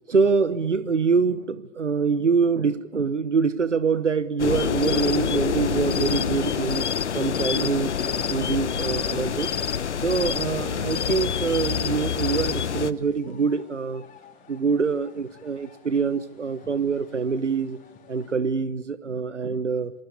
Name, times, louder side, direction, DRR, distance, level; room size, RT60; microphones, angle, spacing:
voice 1, 0.1-6.8 7.1-7.9 8.3-9.5 10.0-14.0 14.5-17.8 18.1-19.9, right 5 dB, 85° right, 15 dB, 1.1 m, -25 dB
sound 1, 4.4-12.9, left 7 dB, 75° left, 1.2 m, -26 dB
sound 2, 12.6-18.3, left 7 dB, 20° left, 4.6 m, -53 dB
28.0 x 23.5 x 8.3 m, 1.0 s
figure-of-eight pair, 105°, 35 cm